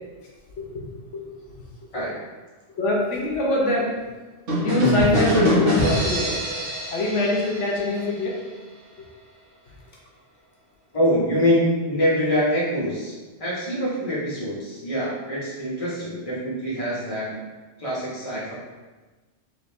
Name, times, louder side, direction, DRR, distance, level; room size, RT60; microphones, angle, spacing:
voice 1, 0.6-1.3 1.9-2.0 2.8-4.1 4.6-6.4 6.9-8.4 9.0-9.1, left 2 dB, 80° left, -3 dB, 1.1 m, -24 dB
sound 1, 4.5-8.2, equal, 85° right, 1.7 m, -24 dB
voice 2, 10.9-17.4 17.8-18.5, equal, 30° left, -8 dB, 1.3 m, -24 dB
3.9 x 3.1 x 3.5 m, 1.2 s
omnidirectional pair, 1.2 m